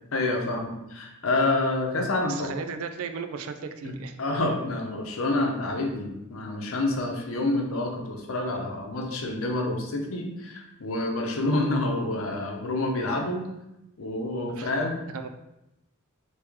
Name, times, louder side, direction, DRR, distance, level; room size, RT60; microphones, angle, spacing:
voice 1, 0.1-2.5 3.8-3.9 4.2-13.5 14.0-15.0, left 2 dB, 70° left, 2 dB, 0.7 m, -28 dB
voice 2, 2.2-4.2 14.6-14.7 15.1-15.3, right 6 dB, 80° right, 8 dB, 0.4 m, -36 dB
3.1 x 2.9 x 3.5 m, 0.90 s
head